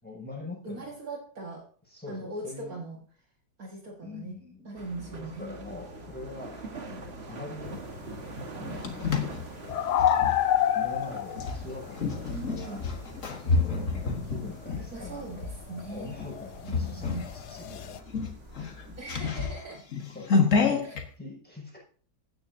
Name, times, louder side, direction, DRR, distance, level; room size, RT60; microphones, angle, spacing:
voice 1, 0.0-1.0 1.9-2.8 4.0-4.7 5.0-7.8 8.6-9.7 10.7-12.8 13.4-15.5 15.9-17.9 19.1-19.2 20.1-20.9 21.2-21.8, left 3 dB, 5° left, -4 dB, 6.6 m, -43 dB
voice 2, 0.6-1.7 2.1-3.0 3.6-4.3 4.7-5.6 12.3-12.8 14.9-16.1 16.6-17.3 17.7-17.8 19.0-19.8 20.8-21.0, right 2 dB, 60° right, 0 dB, 2.2 m, -40 dB
sound 1, 4.8-19.0, right 3 dB, 40° right, 1.8 m, -45 dB
sound 2, 7.7-13.8 14.0-18.0, left 10 dB, 80° left, 1.3 m, -30 dB
sound 3, 8.4-10.4 11.3-15.6 16.0-16.3 16.7-17.3 17.7-17.8 18.1-21.0, left 4 dB, 50° left, 1.7 m, -29 dB
16.0 x 9.8 x 2.7 m, 0.43 s
omnidirectional pair, 1.8 m